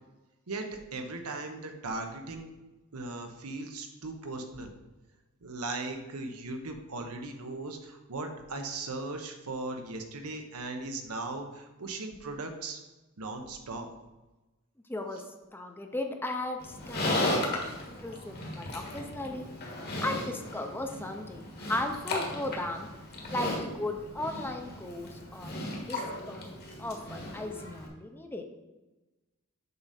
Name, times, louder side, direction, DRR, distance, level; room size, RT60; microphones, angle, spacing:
voice 1, 0.5-2.5 2.9-4.7 5.4-12.8 13.2-13.9, right 2 dB, 85° right, 5 dB, 0.9 m, -38 dB
voice 2, 14.9-15.2 15.5-17.6 17.9-19.5 20.0-22.9 23.3-28.4, left 2 dB, 10° left, 4 dB, 0.6 m, -36 dB
Livestock farm animals working animals, 16.6-27.9, left 1 dB, 50° left, 1.4 m, -36 dB
6.8 x 4.9 x 4.2 m, 1.1 s
head